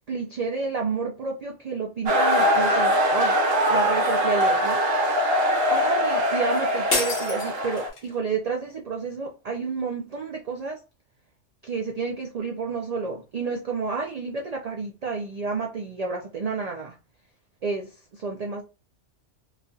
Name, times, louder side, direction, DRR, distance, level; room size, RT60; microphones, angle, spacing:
voice 1, 0.1-3.4 3.7-4.8 5.7-10.8 11.6-16.9 17.6-18.6, right 4 dB, 80° right, 0.3 m, -30 dB
sound 1, 2.1-7.9, equal, 60° right, 0.9 m, -22 dB
sound 2, 6.9-8.2, left 3 dB, 55° left, 1.0 m, -28 dB
3.1 x 2.6 x 2.3 m
omnidirectional pair, 1.2 m